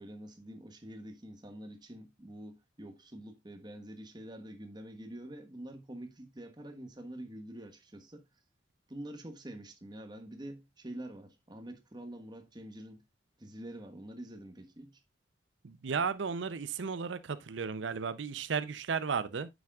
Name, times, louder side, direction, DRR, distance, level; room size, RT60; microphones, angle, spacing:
voice 1, 0.0-8.2 8.9-13.0 13.4-15.0, right 1 dB, 25° right, 1.3 m, -46 dB
voice 2, 15.6-19.5, right 5 dB, 85° right, 0.6 m, -34 dB
9.4 x 7.1 x 2.4 m
head